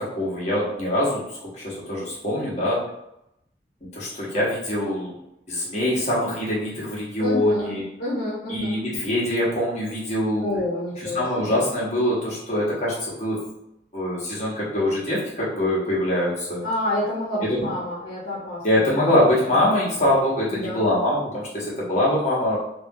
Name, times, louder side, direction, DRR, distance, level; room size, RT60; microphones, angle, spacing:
voice 1, 0.0-2.8 3.9-5.2 5.5-7.8 8.5-10.5 11.0-13.4 13.9-16.6 17.4-17.6 18.6-22.6, left 1 dB, 40° left, -6 dB, 1.0 m, -23 dB
voice 2, 7.2-7.7 8.0-8.7 10.4-11.6 16.6-18.8 19.5-19.6 20.5-20.8, left 1 dB, 60° left, -8 dB, 0.8 m, -28 dB
3.3 x 2.3 x 2.7 m, 0.84 s
head